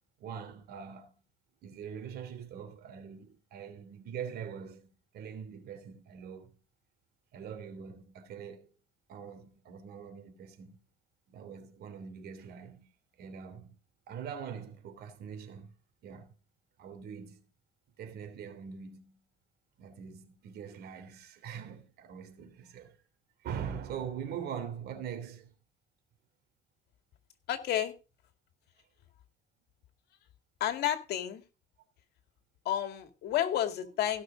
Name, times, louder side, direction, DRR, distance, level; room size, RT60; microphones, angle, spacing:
voice 1, 0.2-1.1 1.6-4.9 5.1-6.6 7.3-8.7 9.1-10.8 11.3-12.9 13.2-13.8 14.1-15.7 16.0-16.3 16.8-17.4 18.0-19.2 19.8-23.0 23.4-25.5, right 7 dB, 70° right, 3.3 m, -43 dB
voice 2, 27.5-27.9 30.6-31.4 32.6-34.2, left 11 dB, 75° left, 2.2 m, -31 dB
16.5 x 6.3 x 5.2 m
cardioid pair, 110°, 17 cm